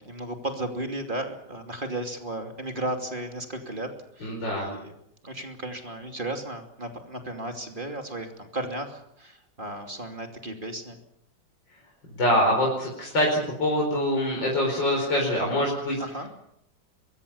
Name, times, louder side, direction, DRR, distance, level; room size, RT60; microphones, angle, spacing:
voice 1, 0.0-3.9 4.2-4.9 5.2-11.0 16.0-16.3, right 1 dB, 25° right, 4 dB, 2.8 m, -34 dB
voice 2, 4.2-4.7 12.2-16.0, left 1 dB, 85° left, -1 dB, 5.6 m, -24 dB
24.0 x 22.0 x 7.1 m, 0.77 s
omnidirectional pair, 1.9 m